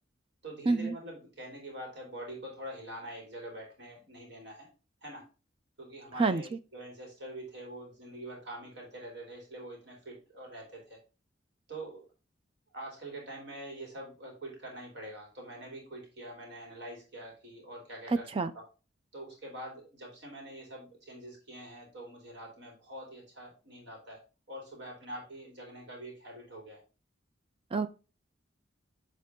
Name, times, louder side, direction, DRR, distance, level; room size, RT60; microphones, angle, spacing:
voice 1, 0.4-4.7 5.0-5.2 5.8-11.0 11.7-12.1 12.7-18.3 18.5-18.6 19.1-26.8, right 1 dB, 65° right, 2.9 m, -45 dB
voice 2, 18.1-18.5 27.7-27.9, right 3 dB, 30° right, 0.4 m, -27 dB
8.8 x 3.7 x 3.6 m
head